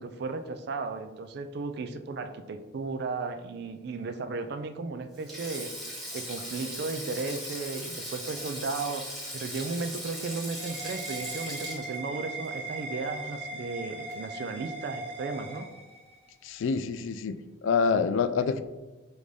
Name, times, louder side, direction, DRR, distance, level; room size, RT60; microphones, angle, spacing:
voice 1, 0.0-5.7 6.1-15.7, right 3 dB, 55° right, 9 dB, 0.3 m, -35 dB
Sink (filling or washing), 5.1-13.6 13.9-14.1 15.3-15.5, equal, ahead, 1.0 m, -39 dB
sound 1, 9.9-16.3, right 2 dB, 30° right, 0.7 m, -40 dB
voice 2, 16.4-18.6, left 5 dB, 80° left, 11 dB, 0.3 m, -27 dB
5.1 x 2.6 x 3.2 m, 1.2 s
head